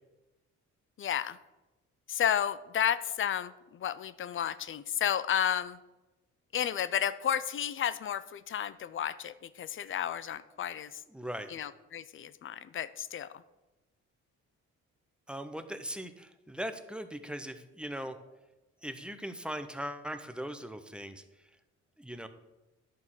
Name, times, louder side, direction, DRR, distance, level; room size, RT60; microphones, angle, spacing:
voice 1, 1.0-1.4 2.1-5.8 6.5-11.0 11.5-13.3, left 9 dB, 45° left, 15 dB, 0.5 m, -32 dB
voice 2, 11.1-11.5 15.3-18.2 18.8-21.2 22.0-22.3, equal, 5° right, 9 dB, 0.7 m, -39 dB
10.5 x 3.7 x 6.3 m, 1.1 s
cardioid pair, 90°, 30 cm